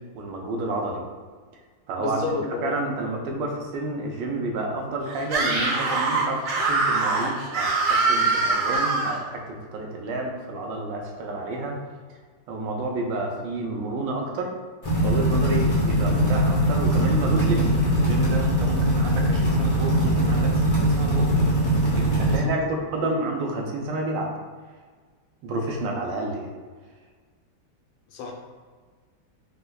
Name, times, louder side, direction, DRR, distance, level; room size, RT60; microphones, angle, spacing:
voice 1, 0.1-1.0 1.9-2.2 2.5-11.8 12.5-14.5 15.0-21.4 21.8-24.3 25.4-26.5, right 2 dB, 80° right, 1 dB, 1.2 m, -30 dB
voice 2, 2.0-2.7 22.3-22.7 23.0-23.2 28.1-28.3, left 4 dB, 85° left, -1 dB, 1.3 m, -31 dB
Screaming, 5.2-9.2, right 3 dB, 60° right, 1.5 m, -23 dB
sound 1, 14.8-22.4, right 1 dB, 45° left, 0.4 m, -21 dB
5.1 x 2.1 x 2.2 m, 1.5 s
omnidirectional pair, 2.1 m